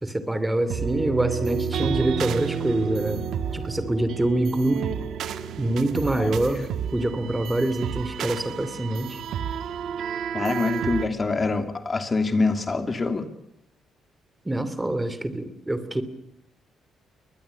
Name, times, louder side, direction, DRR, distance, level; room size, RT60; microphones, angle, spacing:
voice 1, 0.0-3.2 3.5-4.9 5.6-9.2 14.4-16.0, right 1 dB, 10° right, 13 dB, 2.8 m, -25 dB
sound 1, 0.7-11.1, right 7 dB, 70° right, 1.5 m, -30 dB
voice 2, 10.3-13.3, left 3 dB, 30° left, 8 dB, 2.8 m, -25 dB
23.0 x 20.0 x 8.5 m, 0.80 s
cardioid pair, 90°, 0 cm